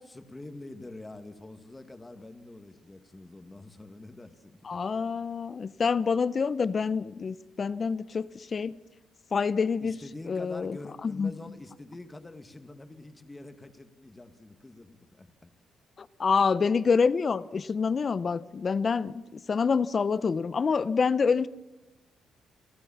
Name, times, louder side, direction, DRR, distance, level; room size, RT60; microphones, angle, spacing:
voice 1, 0.1-4.6 9.8-15.5, left 2 dB, 15° left, 7 dB, 2.0 m, -46 dB
voice 2, 4.6-8.8 9.3-10.0 10.3-10.8 11.0-11.3 16.0-21.5, left 5 dB, 40° left, 17 dB, 0.7 m, -27 dB
29.0 x 13.0 x 7.2 m, 1.1 s
cardioid pair, 90°, 0 cm